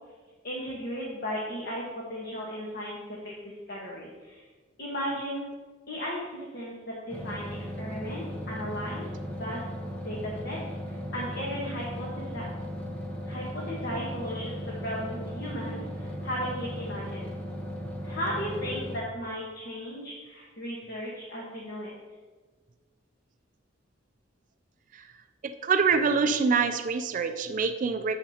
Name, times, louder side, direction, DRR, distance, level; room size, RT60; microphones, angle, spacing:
voice 1, 0.4-3.3 3.7-4.4 4.8-5.4 5.9-9.7 10.0-12.5 13.3-17.3 18.0-21.9, equal, 50° left, -4 dB, 1.2 m, -36 dB
sound 1, 7.1-19.0, equal, 5° left, 1.0 m, -37 dB
voice 2, 25.6-28.2, right 5 dB, 40° right, 8 dB, 0.3 m, -25 dB
9.3 x 7.3 x 2.8 m, 1.4 s
head